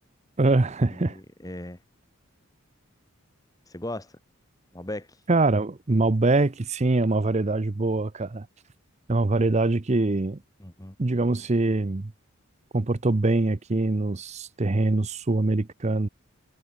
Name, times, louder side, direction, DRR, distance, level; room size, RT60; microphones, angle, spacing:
voice 1, 0.4-1.2 5.3-8.5 9.1-10.4 11.0-12.1 12.7-16.1, right 2 dB, 30° right, 0.6 m, -23 dB
voice 2, 0.9-1.8 3.7-4.2 4.7-5.2 10.6-11.0, left 1 dB, 15° left, 1.7 m, -37 dB
head